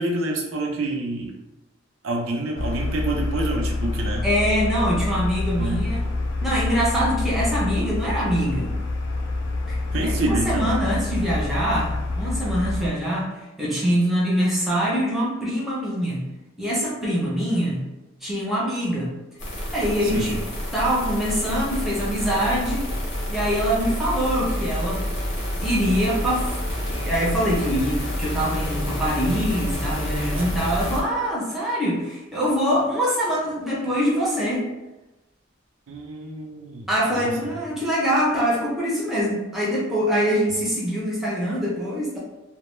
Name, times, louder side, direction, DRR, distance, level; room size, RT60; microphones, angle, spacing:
voice 1, 0.0-1.3 2.0-4.3 5.4-5.8 9.9-10.7 20.0-20.3 30.5-30.7 35.9-37.5, right 2 dB, 80° right, 0 dB, 0.5 m, -28 dB
sound 1, 2.6-12.9, left 2 dB, 70° left, 0.3 m, -27 dB
voice 2, 4.2-6.0 6.4-8.7 9.7-9.8 10.0-16.2 16.6-17.8 18.2-19.1 19.7-20.4 20.7-22.9 23.3-25.1 25.6-26.5 26.9-34.7 36.9-42.2, equal, ahead, -6 dB, 0.5 m, -24 dB
sound 2, 19.4-31.0, equal, 35° left, 0.7 m, -28 dB
2.1 x 2.0 x 3.0 m, 1.0 s
head